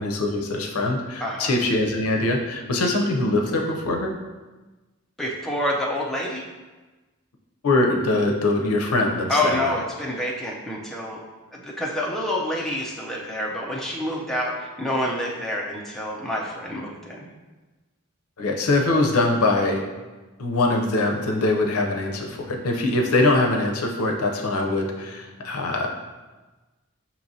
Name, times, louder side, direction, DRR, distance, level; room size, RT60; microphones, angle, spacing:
voice 1, 0.0-4.1 7.6-9.6 18.4-19.8 20.4-25.9, left 2 dB, 80° left, 2 dB, 0.5 m, -22 dB
voice 2, 1.2-1.5 5.2-6.4 9.3-11.2 11.5-17.3, left 1 dB, ahead, -4 dB, 0.5 m, -27 dB
6.0 x 2.9 x 2.7 m, 1.2 s
head